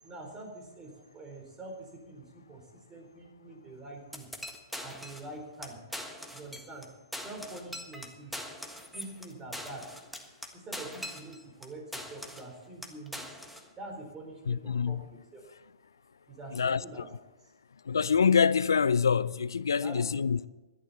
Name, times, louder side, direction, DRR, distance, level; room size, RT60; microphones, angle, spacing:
voice 1, 0.0-4.3 4.8-5.8 6.3-6.9 7.2-10.0 10.5-13.4 13.8-15.4 16.3-17.1 19.8-20.2, right 2 dB, 15° right, 4.3 m, -45 dB
sound 1, 4.1-5.3 5.6-5.7 5.9-6.9 7.1-11.7 11.9-12.5 12.8-13.7, equal, ahead, 1.5 m, -42 dB
voice 2, 14.5-15.0 16.5-16.8 17.9-20.5, left 6 dB, 80° left, 0.5 m, -25 dB
17.5 x 12.0 x 4.3 m
hypercardioid pair, 125°, 2 cm